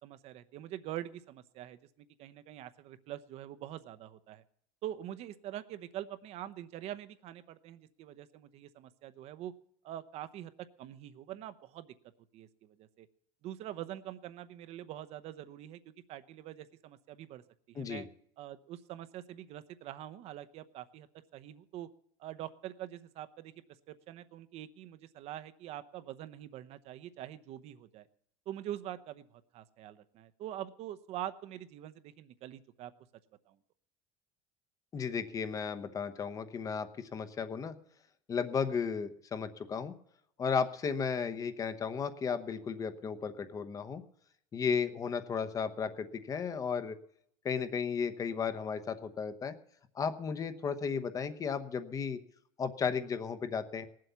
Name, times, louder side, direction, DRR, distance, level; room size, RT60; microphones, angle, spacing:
voice 1, 0.0-4.4 4.8-9.5 9.8-10.5 10.8-11.9 12.3-13.1 13.4-15.8 16.1-18.1 18.4-21.1 21.3-21.9 22.2-23.5 23.9-28.1 28.5-32.9 33.5-33.6, right 12 dB, 50° right, 12 dB, 0.9 m, -44 dB
voice 2, 34.9-37.7 38.3-39.9 40.4-44.0 44.5-47.0 47.4-49.6 49.9-52.2 52.6-53.9, left 6 dB, 25° left, 11 dB, 1.0 m, -34 dB
19.0 x 7.7 x 6.9 m, 0.69 s
cardioid pair, 155°, 14 cm